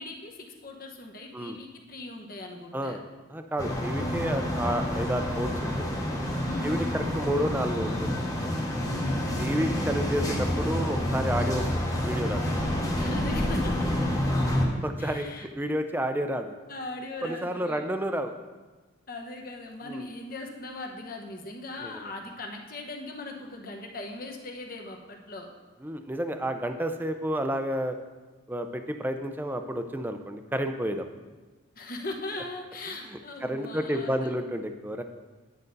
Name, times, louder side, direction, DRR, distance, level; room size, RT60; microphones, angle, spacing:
voice 1, 0.0-3.0 6.4-7.1 8.8-9.3 12.9-13.9 15.0-15.5 16.7-17.9 19.1-25.5 31.7-34.3, left 2 dB, 45° left, 2 dB, 1.0 m, -39 dB
voice 2, 3.3-6.0 6.6-8.2 9.4-12.4 14.7-16.6 17.2-18.3 19.8-20.1 21.8-22.0 25.8-28.0 28.5-31.1 33.4-35.0, equal, 10° right, 7 dB, 0.4 m, -30 dB
sound 1, 3.6-14.7, left 1 dB, 15° left, 1.0 m, -28 dB
9.7 x 6.5 x 4.0 m, 1.3 s
head